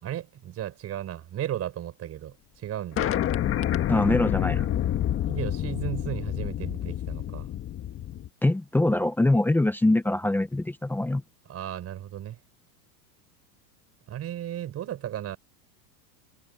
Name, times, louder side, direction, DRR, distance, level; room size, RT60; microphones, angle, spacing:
voice 1, 0.0-3.1 5.3-7.5 11.5-12.4 14.1-15.4, right 11 dB, 30° right, 5.1 m, -35 dB
sound 1, 3.0-8.3, left 11 dB, 25° left, 1.6 m, -28 dB
voice 2, 3.9-4.7 8.4-11.2, left 2 dB, 5° left, 0.8 m, -23 dB
supercardioid pair, 145°, 48 cm